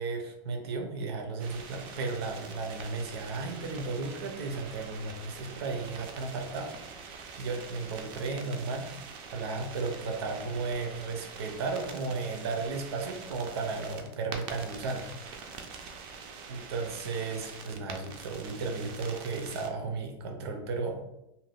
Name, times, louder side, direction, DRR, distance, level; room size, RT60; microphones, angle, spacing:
voice 1, 0.0-7.1 7.4-15.1 16.5-21.1, right 4 dB, 80° right, 4 dB, 0.7 m, -34 dB
sound 1, 1.4-19.7, right 5 dB, 40° right, 0.4 m, -45 dB
2.7 x 2.1 x 3.4 m, 0.86 s
supercardioid pair, 160°, 13 cm